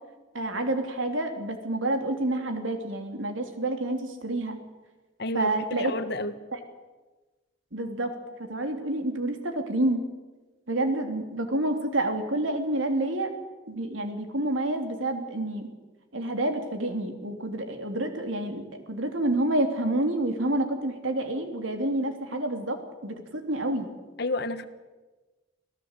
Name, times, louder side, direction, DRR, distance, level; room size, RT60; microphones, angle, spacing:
voice 1, 0.3-4.6 5.3-5.9 7.7-8.1 8.4-10.0 10.7-13.3 13.7-15.7 16.1-23.9, right 1 dB, 85° right, 6 dB, 3.4 m, -28 dB
voice 2, 5.2-6.3 24.2-24.6, left 2 dB, 60° left, 11 dB, 1.5 m, -30 dB
27.0 x 17.5 x 8.3 m, 1.2 s
head